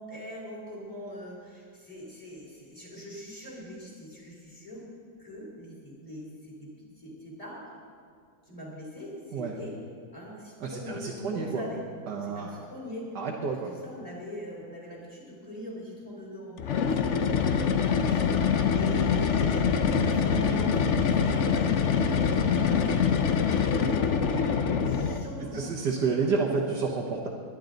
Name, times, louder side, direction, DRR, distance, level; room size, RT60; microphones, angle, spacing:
voice 1, 0.0-4.9 5.2-7.8 8.5-9.8 10.1-11.8 12.1-13.2 13.5-18.3 18.8-26.1, equal, 15° left, -4 dB, 3.6 m, -42 dB
voice 2, 10.6-11.7 12.1-12.6 13.2-13.7 24.3-24.4 25.5-27.3, right 4 dB, 60° right, -1 dB, 1.7 m, -29 dB
sound 1, 16.6-25.4, left 6 dB, 65° left, 0.7 m, -25 dB
21.0 x 11.0 x 3.9 m, 2.3 s
omnidirectional pair, 2.1 m